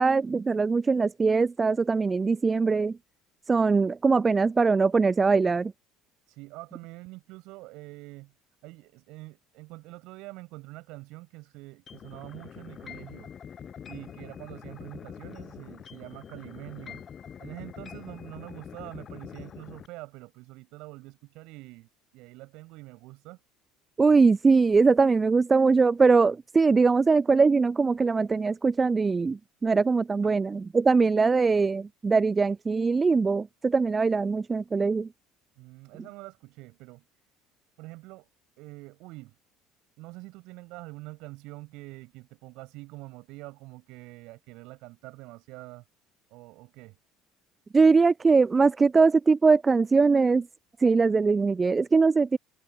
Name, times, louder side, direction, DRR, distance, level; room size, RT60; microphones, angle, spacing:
voice 1, 0.0-3.0 3.5-5.7 24.0-35.1 47.7-50.5 50.8-52.4, right 4 dB, 20° right, 0.4 m, -22 dB
voice 2, 6.3-8.3 8.6-13.3 13.9-17.0 17.4-21.9 22.1-23.4 30.2-30.3 35.6-37.0 37.8-38.3 38.6-39.4 40.0-45.8 46.3-47.0, right 22 dB, 55° right, 7.2 m, -45 dB
sound 1, 11.9-19.9, left 8 dB, 35° left, 5.3 m, -44 dB
figure-of-eight pair, 60°, 0 cm